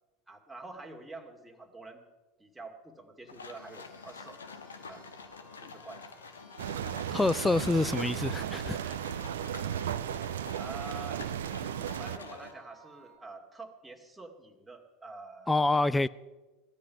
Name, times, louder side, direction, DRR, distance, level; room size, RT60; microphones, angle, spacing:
voice 1, 0.3-2.0 2.4-4.4 4.9-5.0 5.6-6.0 10.5-11.3 12.0-15.7, right 3 dB, 10° right, 2.3 m, -47 dB
sound 1, 3.3-12.5, left 4 dB, 80° left, 1.3 m, -47 dB
sound 2, 3.5-13.2, equal, 55° left, 5.1 m, -59 dB
sound 3, 6.6-12.2, right 10 dB, 70° right, 0.7 m, -35 dB
voice 2, 7.1-8.9 15.5-16.1, left 2 dB, 10° left, 0.4 m, -27 dB
18.0 x 13.0 x 5.7 m
figure-of-eight pair, 80°, 0 cm